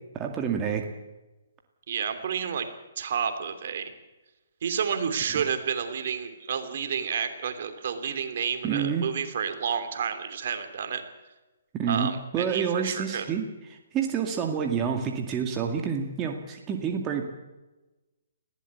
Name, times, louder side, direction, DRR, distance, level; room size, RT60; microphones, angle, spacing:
voice 1, 0.1-0.8 8.6-9.1 11.7-17.2, right 7 dB, 20° right, 3 dB, 2.2 m, -28 dB
voice 2, 1.9-2.7 3.0-3.9 4.6-11.0 11.9-13.2, right 7 dB, 55° right, 8 dB, 3.1 m, -30 dB
20.0 x 16.0 x 8.4 m, 1.1 s
hypercardioid pair, 145°, 0 cm